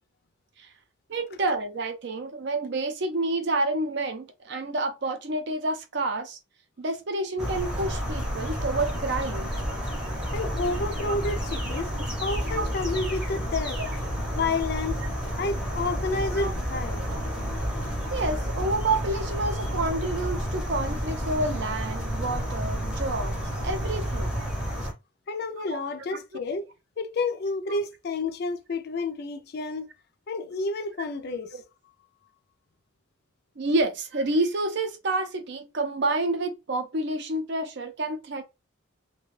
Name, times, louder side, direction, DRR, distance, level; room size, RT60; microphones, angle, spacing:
voice 1, 1.1-6.4 6.8-9.5 12.5-12.7 16.4-16.5 17.0-17.2 18.1-24.3 25.7-25.8 26.1-26.2 33.6-38.4, right 2 dB, 55° right, 0.5 m, -29 dB
sound 1, 7.4-24.9, equal, 5° right, 0.7 m, -30 dB
voice 2, 10.3-11.9 12.2-13.8 14.3-15.0 15.4-17.1 25.3-26.7 27.0-29.9 30.3-31.6, left 3 dB, 50° left, 0.4 m, -30 dB
2.3 x 2.2 x 3.1 m
head